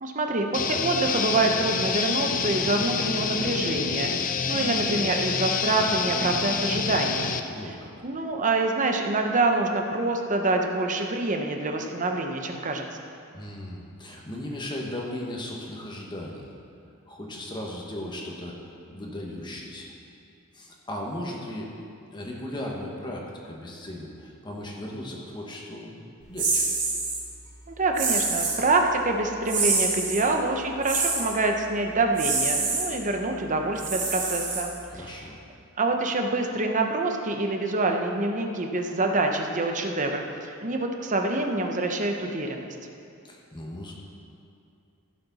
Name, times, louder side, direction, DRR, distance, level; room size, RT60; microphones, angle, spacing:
voice 1, 0.0-7.3 7.6-7.7 8.0-13.0 27.7-35.2 35.8-42.7, right 2 dB, 35° right, 3 dB, 0.8 m, -26 dB
sound 1, 0.5-7.4, left 6 dB, 35° left, 0.5 m, -27 dB
voice 2, 7.5-7.9 13.3-16.5 17.1-18.6 18.9-19.9 20.5-21.8 22.1-26.0 26.3-26.6 34.9-35.4 43.2-43.9, left 1 dB, 20° left, -1 dB, 1.4 m, -37 dB
sound 2, 26.4-27.2 27.9-28.6 29.5-30.2 30.8-31.3 32.1-32.9 33.8-34.9, right 4 dB, 55° right, 2.7 m, -26 dB
15.5 x 7.1 x 4.1 m, 2.6 s
head